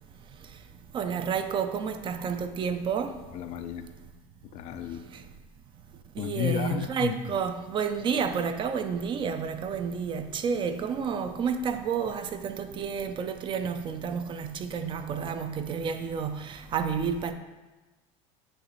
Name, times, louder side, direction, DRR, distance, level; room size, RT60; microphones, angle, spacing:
voice 1, 0.9-3.2 6.2-17.3, right 6 dB, 30° right, 0.4 m, -30 dB
voice 2, 3.3-3.9 4.5-5.1 6.2-7.2, left 10 dB, 45° left, 0.4 m, -32 dB
8.6 x 3.0 x 4.0 m
supercardioid pair, 130°, 16 cm